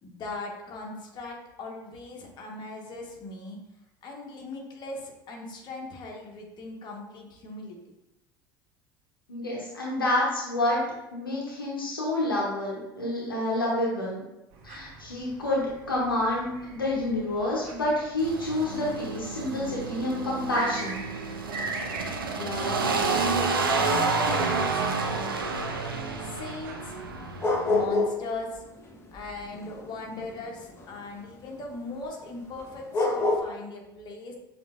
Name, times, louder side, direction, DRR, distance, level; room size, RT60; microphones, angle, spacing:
voice 1, 0.0-3.6 4.0-7.8 22.3-25.7 26.2-26.9 27.7-28.7 29.1-34.4, left 2 dB, 40° left, -1 dB, 1.2 m, -39 dB
voice 2, 9.3-10.8 11.1-14.2 14.6-21.0, left 1 dB, 85° left, -5 dB, 0.9 m, -28 dB
sound 1, 14.5-27.4, right 3 dB, 55° right, 0.8 m, -43 dB
sound 2, 18.2-27.9, right 4 dB, 85° right, 0.5 m, -29 dB
sound 3, 27.0-28.3 28.6-31.0 32.6-32.7 32.9-33.4, left 2 dB, 20° left, 0.8 m, -26 dB
6.9 x 2.7 x 2.4 m, 0.92 s
figure-of-eight pair, 70°, 11 cm